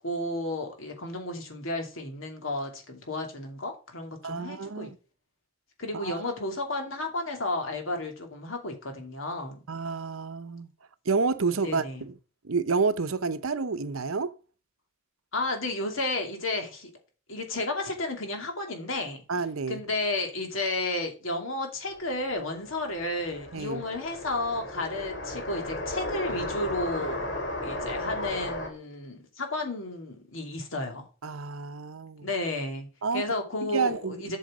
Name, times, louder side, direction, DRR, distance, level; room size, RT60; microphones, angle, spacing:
voice 1, 0.0-4.9 5.8-9.6 11.6-12.0 15.3-16.9 17.3-19.2 19.7-27.2 27.6-31.1 32.2-32.9 33.1-34.4, left 2 dB, 75° left, 2.6 m, -32 dB
voice 2, 4.2-5.0 5.9-6.2 9.7-10.7 11.1-12.1 12.4-14.3 19.3-19.8 23.5-23.8 31.2-32.3 33.0-33.2 33.6-34.4, right 4 dB, 85° right, 0.8 m, -29 dB
sound 1, 21.9-28.7, left 1 dB, 55° left, 2.5 m, -35 dB
8.1 x 6.4 x 4.9 m
head